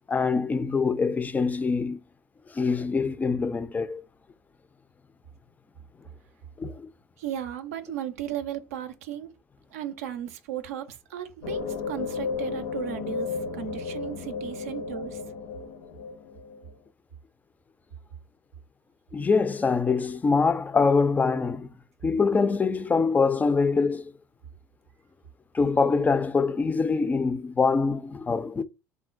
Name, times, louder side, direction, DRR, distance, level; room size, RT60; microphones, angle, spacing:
voice 1, 0.1-2.0 2.5-4.0 6.6-6.9 19.1-21.7 22.0-24.1 25.5-28.6, left 4 dB, 20° left, 0.4 m, -24 dB
voice 2, 7.2-9.3 9.7-15.2, right 10 dB, 70° right, 0.5 m, -35 dB
sound 1, 11.4-16.7, left 5 dB, 70° left, 0.6 m, -33 dB
3.6 x 2.1 x 2.4 m
figure-of-eight pair, 60°, 8 cm